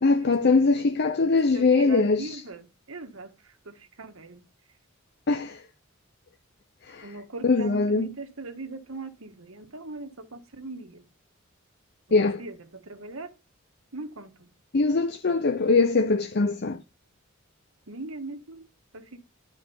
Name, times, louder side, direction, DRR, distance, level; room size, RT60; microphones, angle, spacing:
voice 1, 0.0-2.4 5.3-5.6 6.8-7.1 7.4-8.2 12.1-12.4 14.7-16.8, left 3 dB, 50° left, 0.6 m, -22 dB
voice 2, 1.5-2.6 2.9-3.3 4.0-4.3 7.0-10.1 10.6-10.9 12.4-12.5 12.9-13.3 13.9-14.3 17.9-18.6, right 3 dB, 75° right, 1.5 m, -38 dB
12.0 x 4.8 x 7.0 m
head